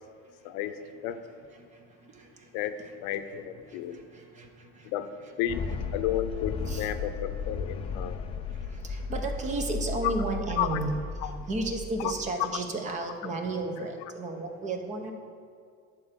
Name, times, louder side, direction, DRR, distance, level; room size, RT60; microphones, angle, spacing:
voice 1, 0.4-0.8 1.0-1.2 2.5-4.0 4.8-5.1 5.4-5.6 5.9-8.2 10.6-10.8 11.2-11.3 12.0-12.1, left 11 dB, 65° left, 10 dB, 0.7 m, -32 dB
voice 2, 1.5-2.9 3.3-4.9 5.2-5.3 6.7-6.9 8.1-11.0 11.2-15.1, right 2 dB, 25° right, 4 dB, 0.8 m, -34 dB
sound 1, 5.5-12.4, left 4 dB, 20° left, 0.3 m, -35 dB
11.5 x 4.5 x 8.1 m, 2.2 s
cardioid pair, 170°, 31 cm